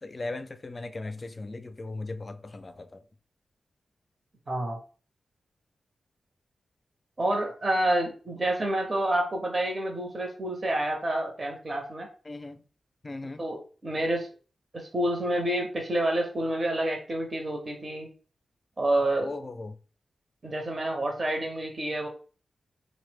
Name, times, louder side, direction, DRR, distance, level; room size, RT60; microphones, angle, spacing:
voice 1, 0.0-3.0 12.3-12.6 13.0-13.4 19.2-19.8, left 2 dB, 40° left, 0.3 m, -38 dB
voice 2, 4.5-4.8 7.2-12.1 13.4-14.3 14.7-18.1 18.8-19.3 20.4-22.1, right 1 dB, 40° right, 0.6 m, -28 dB
2.7 x 2.0 x 3.3 m
cardioid pair, 55°, 0 cm